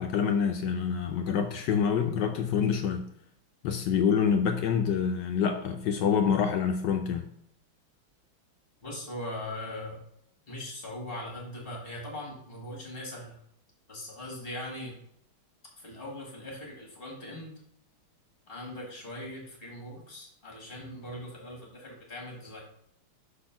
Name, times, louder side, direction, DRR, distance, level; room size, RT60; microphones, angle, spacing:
voice 1, 0.0-3.0 3.6-7.3, left 7 dB, 75° left, 5 dB, 1.0 m, -26 dB
voice 2, 8.8-10.0 10.5-13.4 13.9-14.9 15.8-17.6 18.5-22.7, left 1 dB, 25° left, -1 dB, 1.9 m, -40 dB
5.6 x 4.2 x 5.7 m, 0.72 s
omnidirectional pair, 2.3 m